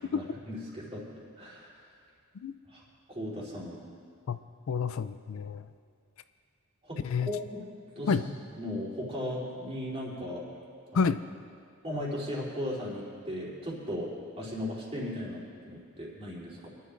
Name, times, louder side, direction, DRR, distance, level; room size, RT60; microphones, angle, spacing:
voice 1, 0.0-1.0 1.4-1.8 2.7-3.8 6.8-7.6 7.9-8.3 8.5-10.5 10.9-11.1 11.8-14.1 14.4-16.7, left 1 dB, 30° right, -5 dB, 3.2 m, -37 dB
voice 2, 4.7-5.7 7.0-7.3 8.1-8.2 10.9-11.2, left 5 dB, 75° left, 12 dB, 0.4 m, -28 dB
26.0 x 11.5 x 2.5 m, 2.2 s
head